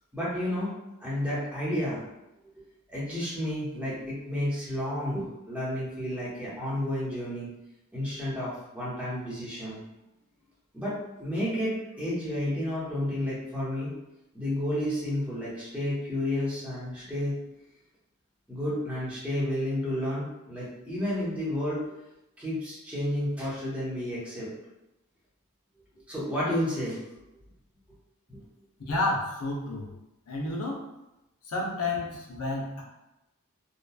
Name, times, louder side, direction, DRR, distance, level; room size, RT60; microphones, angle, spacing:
voice 1, 0.1-0.7 1.0-2.0 2.9-7.5 7.9-9.8 10.7-13.9 14.3-17.4 18.5-21.8 22.4-24.5 26.1-27.0 28.3-28.5, left 1 dB, 5° right, -9 dB, 0.8 m, -31 dB
voice 2, 28.9-29.9 30.3-30.8 31.4-32.8, left 2 dB, 80° left, -3 dB, 0.6 m, -30 dB
2.9 x 2.2 x 2.3 m, 0.93 s
head